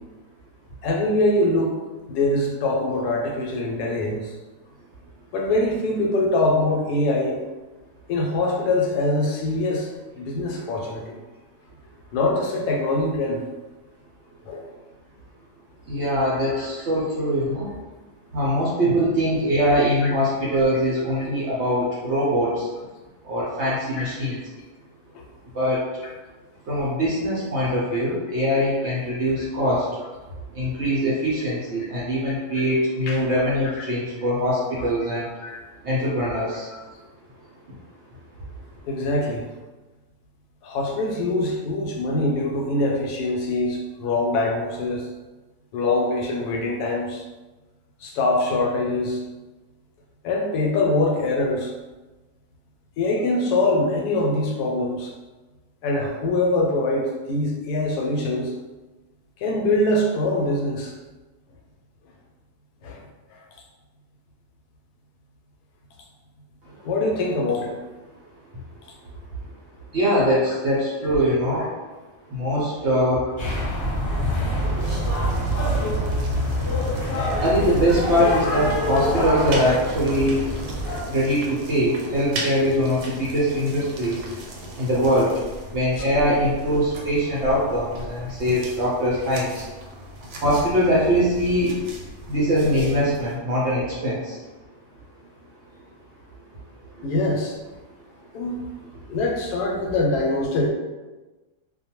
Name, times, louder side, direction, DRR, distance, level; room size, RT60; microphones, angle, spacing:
voice 1, 0.8-1.8 2.1-4.2 5.3-7.4 8.1-11.2 12.1-13.4 14.5-14.6 16.5-16.7 20.0-20.2 24.0-24.1 28.8-29.3 33.0-33.2 33.8-33.9 35.4-35.6 36.2-36.3 36.7-36.8 38.9-39.4 40.6-45.1 45.7-47.2 48.0-49.2 50.2-51.7 53.0-55.1 55.8-58.5 59.4-60.9 62.8-63.0 66.8-67.8 70.7-70.8 86.0-86.1 97.0-97.5 98.3-98.6 99.1-100.7, left 2 dB, 80° left, 0 dB, 1.1 m, -23 dB
voice 2, 15.9-17.7 18.3-22.7 23.2-24.4 25.5-25.9 26.7-29.9 30.5-35.3 35.8-36.7 69.9-71.7 72.3-73.2 77.4-80.5 81.1-84.2 84.8-85.3 85.7-89.6 90.4-91.8 92.3-94.4 97.0-97.1, equal, 60° right, -7 dB, 0.7 m, -22 dB
sound 1, 73.4-81.0, equal, 40° left, 1.0 m, -25 dB
sound 2, 74.8-93.4, right 1 dB, 80° right, 1.1 m, -37 dB
2.5 x 2.2 x 2.9 m, 1.2 s
omnidirectional pair, 1.7 m